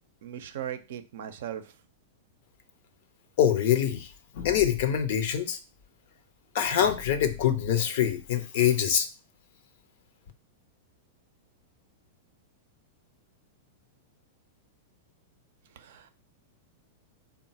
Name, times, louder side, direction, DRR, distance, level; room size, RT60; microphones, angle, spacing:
voice 1, 0.2-1.7 15.7-16.1, right 10 dB, 70° right, 9 dB, 0.5 m, -38 dB
voice 2, 3.4-4.1 4.3-5.6 6.5-9.1, left 9 dB, 60° left, 9 dB, 0.6 m, -24 dB
3.8 x 2.1 x 4.1 m, 0.31 s
hypercardioid pair, 110°, 0 cm